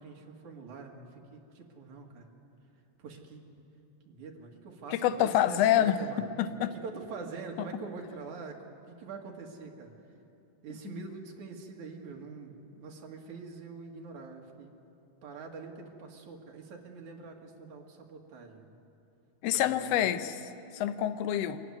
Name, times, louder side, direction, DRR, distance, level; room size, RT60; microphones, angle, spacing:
voice 1, 0.0-2.3 3.0-3.4 4.1-6.3 6.6-9.9 10.6-14.7 15.2-18.7 19.5-20.1, right 4 dB, 65° right, 1 dB, 3.2 m, -44 dB
voice 2, 4.9-6.0 6.4-6.7 7.6-7.7 10.9-11.0 19.4-21.6, left 11 dB, 75° left, 10 dB, 1.5 m, -27 dB
24.5 x 15.0 x 9.7 m, 2.7 s
omnidirectional pair, 3.8 m